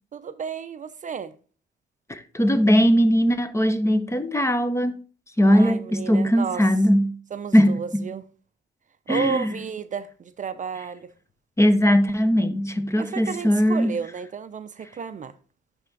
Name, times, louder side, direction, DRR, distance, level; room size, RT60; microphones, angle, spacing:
voice 1, 0.1-1.3 5.5-6.6 7.3-8.2 9.1-11.1 13.0-15.3, right 6 dB, 40° right, 0.5 m, -32 dB
voice 2, 2.1-4.9 5.4-7.1 7.5-8.1 9.1-9.6 11.6-13.9, equal, 15° left, 0.7 m, -20 dB
10.5 x 3.5 x 3.8 m
cardioid pair, 90°, 20 cm